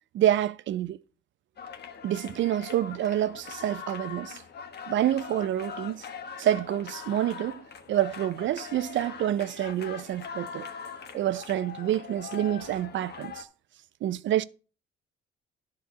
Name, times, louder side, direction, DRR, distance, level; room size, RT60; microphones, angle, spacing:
voice 1, 0.1-1.0 2.0-4.4 4.9-6.0 6.4-10.7 11.1-13.5 14.0-14.4, right 12 dB, 70° right, 0.6 m, -28 dB
sound 1, 1.6-13.4, left 6 dB, 55° left, 1.3 m, -42 dB
11.0 x 4.3 x 6.2 m
cardioid pair, 90°, 20 cm